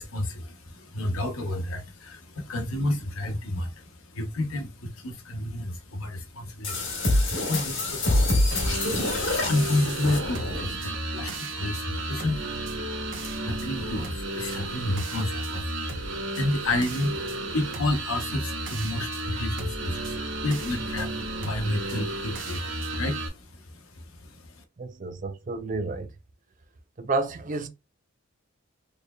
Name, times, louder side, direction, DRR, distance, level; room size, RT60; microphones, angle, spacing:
voice 1, 0.0-24.6, left 1 dB, 90° left, 0.9 m, -31 dB
sound 1, 6.6-10.8, left 2 dB, 65° left, 1.9 m, -26 dB
sound 2, 8.5-23.3, right 2 dB, 65° right, 0.9 m, -33 dB
voice 2, 24.8-26.1 27.0-27.7, right 3 dB, 40° right, 0.5 m, -30 dB
4.2 x 3.3 x 2.3 m
head